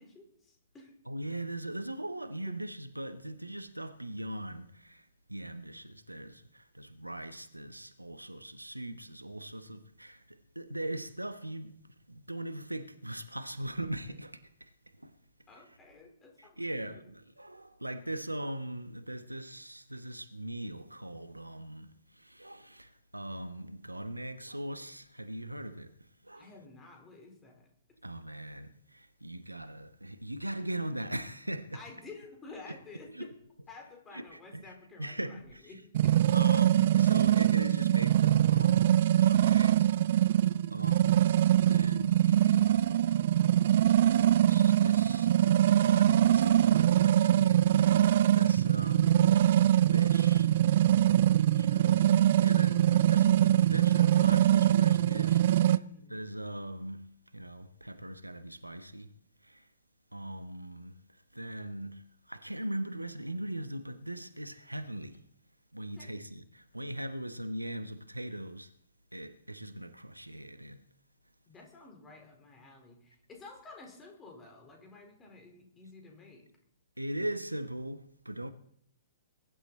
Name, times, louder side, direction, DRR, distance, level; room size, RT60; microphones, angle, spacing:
voice 1, 0.0-0.9 2.5-2.6 15.5-17.1 26.3-27.7 31.7-33.3 33.7-36.2 55.8-56.3 66.0-66.1 71.5-76.5, left 3 dB, 15° left, 4.3 m, -51 dB
voice 2, 1.1-5.0 5.3-10.2 10.5-11.8 12.1-14.4 15.0-15.1 16.6-21.9 22.2-25.9 26.3-26.4 28.0-31.8 33.2-33.3 34.1-34.2 34.5-34.6 35.0-35.6 36.3-39.9 40.7-41.3 41.6-43.3 44.4-48.0 48.3-50.6 51.6-55.8 56.1-57.1 57.3-59.1 59.5-59.6 60.1-61.0 61.3-62.0 62.3-65.2 65.7-68.7 69.1-70.8 77.0-78.5, right 1 dB, 85° right, 1.1 m, -40 dB
sound 1, 35.9-55.8, right 12 dB, 45° right, 0.5 m, -23 dB
22.0 x 11.5 x 4.2 m
figure-of-eight pair, 115°, 0 cm